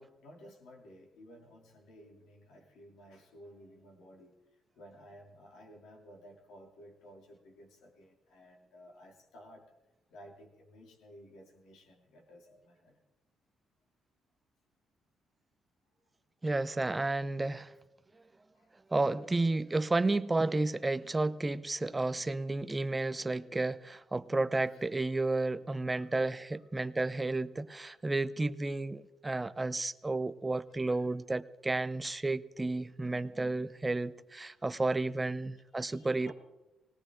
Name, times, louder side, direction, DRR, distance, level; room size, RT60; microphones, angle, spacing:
voice 1, 0.0-4.3 4.7-9.7 10.1-13.0 18.5-18.7 24.7-24.8 25.9-26.3 26.5-26.6 30.7-31.1 34.6-35.4 35.8-36.3, equal, 85° left, 3.0 m, -55 dB
voice 2, 16.4-17.7 18.9-36.3, right 2 dB, 20° right, 0.6 m, -32 dB
19.0 x 18.0 x 3.8 m
cardioid pair, 90°, 0 cm